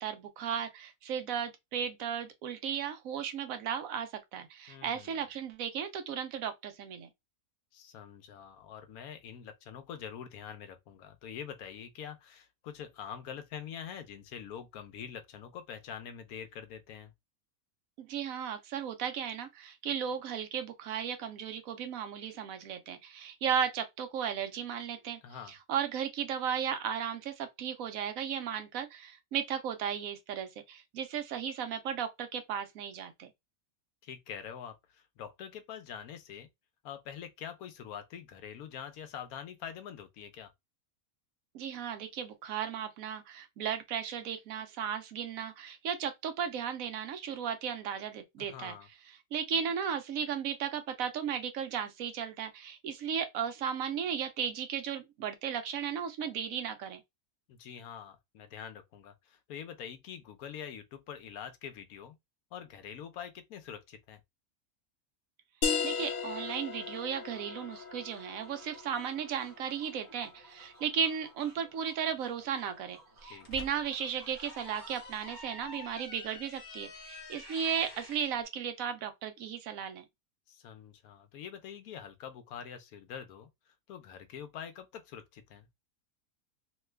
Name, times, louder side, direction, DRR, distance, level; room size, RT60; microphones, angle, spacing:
voice 1, 0.0-7.1 18.0-25.2 25.5-33.3 41.5-48.8 49.3-57.0 65.8-80.0, right 8 dB, 70° right, 1.0 m, -35 dB
voice 2, 4.7-5.2 7.7-17.1 25.2-25.5 34.0-36.5 36.8-40.5 48.4-48.9 57.5-62.2 62.5-64.2 73.3-73.5 80.5-83.5 83.9-85.7, left 8 dB, 80° left, 1.1 m, -45 dB
sound 1, 65.6-71.0, left 6 dB, 60° left, 0.6 m, -37 dB
sound 2, 66.0-75.9, right 2 dB, 50° right, 1.3 m, -58 dB
sound 3, 73.2-78.3, left 2 dB, 40° left, 1.1 m, -48 dB
3.0 x 2.3 x 3.2 m
omnidirectional pair, 1.5 m